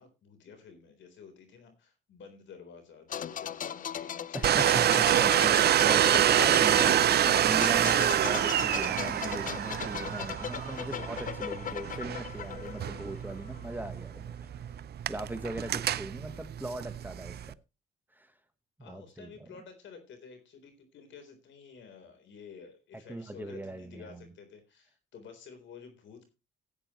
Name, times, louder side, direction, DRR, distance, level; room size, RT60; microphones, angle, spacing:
voice 1, 0.0-5.5 6.3-7.4 18.8-26.3, left 6 dB, 70° left, 7 dB, 3.9 m, -51 dB
sound 1, 3.1-13.7 14.0-14.2, left 9 dB, 40° left, 0.5 m, -38 dB
voice 2, 4.3-6.9 7.4-14.6 15.1-17.6 18.1-18.3 18.8-19.5 23.1-24.2, right 1 dB, 10° right, 8 dB, 1.3 m, -39 dB
Domestic sounds home sounds, 4.4-17.5, right 11 dB, 55° right, 0.5 m, -27 dB
16.0 x 9.0 x 3.1 m, 0.27 s
cardioid pair, 90°, 20 cm